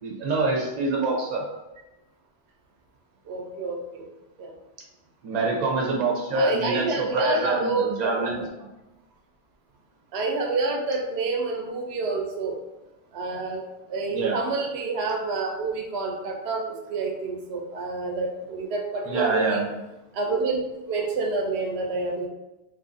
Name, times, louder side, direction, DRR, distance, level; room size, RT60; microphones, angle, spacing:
voice 1, 0.0-1.4 5.2-8.4 14.1-14.4 19.0-19.7, right 3 dB, 50° right, -1 dB, 0.7 m, -25 dB
voice 2, 3.3-4.1 4.4-4.5 6.3-8.4 10.1-12.6 13.1-13.6 13.9-19.6 20.1-22.3, right 3 dB, 90° right, 1 dB, 0.8 m, -28 dB
2.6 x 2.4 x 2.5 m, 0.98 s
omnidirectional pair, 1.0 m